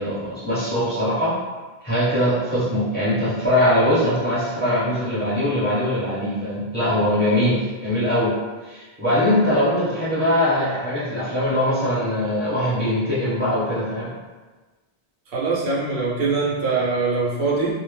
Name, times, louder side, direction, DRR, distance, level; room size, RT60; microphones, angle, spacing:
voice 1, 0.0-1.4 1.8-8.3 8.6-14.1, left 1 dB, 10° left, -11 dB, 0.8 m, -21 dB
voice 2, 15.3-17.8, right 4 dB, 70° right, -6 dB, 0.8 m, -22 dB
2.1 x 2.0 x 3.1 m, 1.3 s
omnidirectional pair, 1.0 m